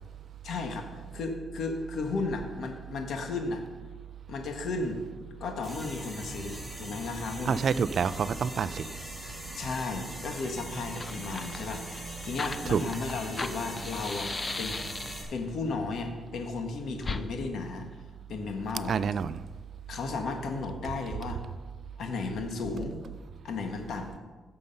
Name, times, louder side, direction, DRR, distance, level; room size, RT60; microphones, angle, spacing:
voice 1, 0.4-3.6 4.3-5.0 5.4-7.6 9.6-14.3 14.6-14.8 15.0-17.9 18.3-19.0 19.9-21.4 22.0-23.0 23.4-24.2, left 3 dB, 75° left, 4 dB, 1.6 m, -34 dB
sound 1, 5.6-15.2, equal, ahead, 4.2 m, -41 dB
voice 2, 7.5-8.9 12.7-12.8 18.9-19.4, right 6 dB, 60° right, 15 dB, 0.5 m, -27 dB
Fire, 10.5-10.6 10.8-15.4 17.0-17.2, left 3 dB, 25° left, 0.7 m, -37 dB
16.0 x 6.7 x 5.5 m, 1.3 s
cardioid pair, 110°, 0 cm